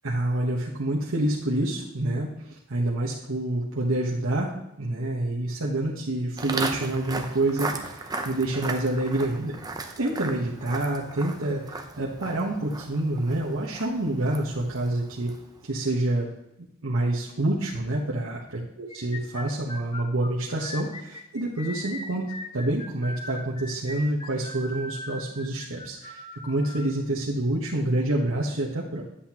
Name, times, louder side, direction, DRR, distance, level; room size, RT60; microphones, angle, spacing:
voice 1, 0.0-4.5 4.8-9.6 10.0-15.3 15.6-16.3 16.8-18.6 18.9-22.2 22.5-29.0, right 1 dB, 75° right, -4 dB, 1.2 m, -27 dB
Walk footsteps, 6.4-15.6, right 3 dB, 20° right, 0.7 m, -36 dB
sound 1, 18.9-26.9, left 2 dB, 25° left, 0.7 m, -40 dB
9.9 x 8.0 x 3.0 m, 0.83 s
head